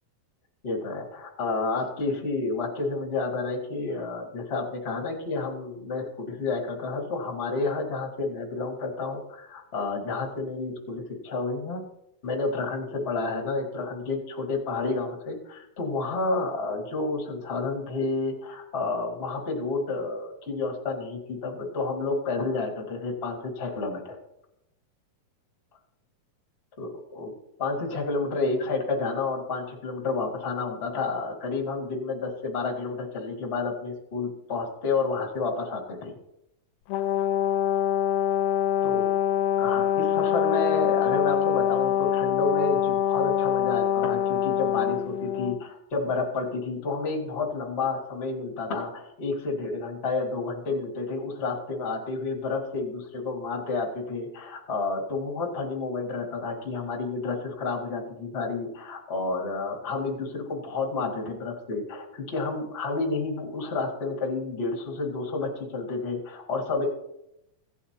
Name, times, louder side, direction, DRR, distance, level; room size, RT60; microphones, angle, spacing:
voice 1, 0.6-11.8 12.2-24.2 26.8-27.3 27.6-36.1 38.8-39.1 39.6-66.8, left 3 dB, 35° left, 0 dB, 0.9 m, -30 dB
Brass instrument, 36.9-45.6, left 10 dB, 90° left, 2.3 m, -24 dB
16.0 x 8.3 x 2.9 m, 0.82 s
omnidirectional pair, 4.1 m